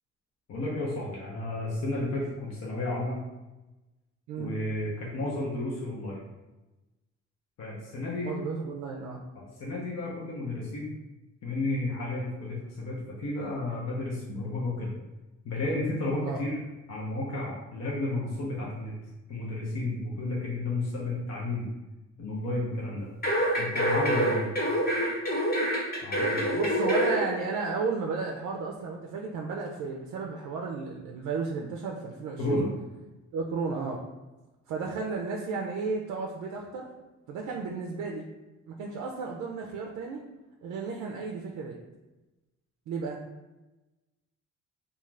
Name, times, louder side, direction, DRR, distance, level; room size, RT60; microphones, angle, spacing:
voice 1, 0.5-3.2 4.4-6.2 7.6-8.3 9.4-10.9 11.4-14.9 15.4-16.6 16.9-18.9 19.3-21.7 22.2-23.1 23.6-24.5 26.0-26.5 32.4-32.7, left 2 dB, 60° left, -5 dB, 0.7 m, -32 dB
voice 2, 8.2-9.2 16.2-16.4 26.5-32.7 33.3-34.0 34.7-36.9 37.3-38.2 38.7-40.2 40.6-41.8 42.9-43.2, right 4 dB, 70° right, 0 dB, 0.4 m, -33 dB
sound 1, 23.2-27.2 27.6-27.7, equal, 30° left, 0.9 m, -26 dB
2.4 x 2.4 x 3.1 m, 1.1 s
cardioid pair, 90°, 30 cm